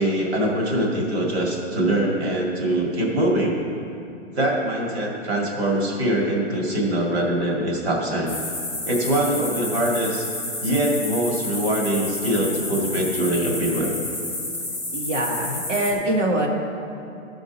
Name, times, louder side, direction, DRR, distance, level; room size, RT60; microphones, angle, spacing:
voice 1, 0.0-3.6 4.4-8.4 8.9-10.3 10.6-13.9, right 1 dB, 60° right, -2 dB, 2.2 m, -23 dB
sound 1, 8.3-15.9, left 2 dB, 10° right, 1.2 m, -30 dB
voice 2, 14.9-16.5, right 1 dB, 75° right, 0 dB, 1.8 m, -23 dB
13.0 x 5.3 x 4.0 m, 2.7 s
hypercardioid pair, 170°, 37 cm